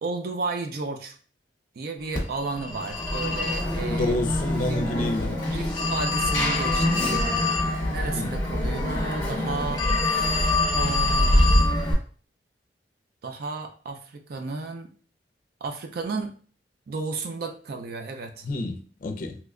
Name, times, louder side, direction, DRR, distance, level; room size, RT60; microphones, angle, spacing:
voice 1, 0.0-1.2 1.8-4.2 4.6-4.8 5.5-7.2 7.9-11.6 13.2-14.9 15.6-16.3 16.9-18.5, right 3 dB, 60° right, 0.4 m, -33 dB
Telephone, 2.1-11.9, left 2 dB, 25° left, 1.0 m, -24 dB
voice 2, 3.8-5.4 8.1-8.4 18.4-19.4, left 2 dB, 50° left, 0.4 m, -29 dB
2.9 x 2.1 x 3.5 m
head